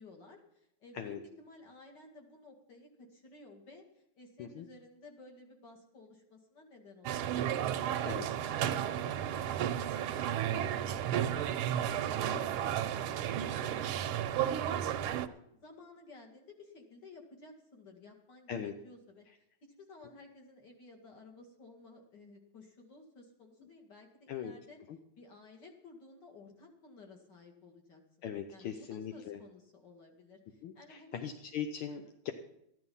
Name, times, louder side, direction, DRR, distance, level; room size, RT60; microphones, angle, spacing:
voice 1, 0.0-7.5 7.8-11.6 12.0-19.3 19.6-24.8 25.2-28.0 28.5-31.2 31.9-32.1, left 3 dB, 55° left, 0 dB, 2.7 m, -55 dB
sound 1, 7.1-15.3, right 10 dB, 80° right, 1.5 m, -33 dB
voice 2, 28.2-29.4 30.6-32.3, left 8 dB, 80° left, 6 dB, 1.6 m, -40 dB
14.0 x 11.0 x 5.5 m, 0.79 s
omnidirectional pair, 2.3 m